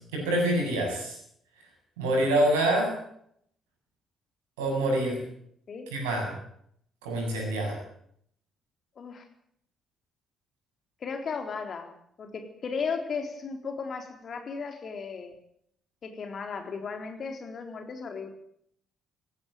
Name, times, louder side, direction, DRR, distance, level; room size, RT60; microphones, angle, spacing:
voice 1, 0.1-1.1 2.0-2.9 4.6-5.2 5.9-6.3 7.0-7.8, right 1 dB, 75° right, 1 dB, 7.6 m, -26 dB
voice 2, 11.0-11.9 12.2-15.3 16.0-18.3, left 5 dB, 45° left, 6 dB, 3.9 m, -35 dB
17.5 x 16.0 x 9.2 m, 0.69 s
figure-of-eight pair, 45°, 0 cm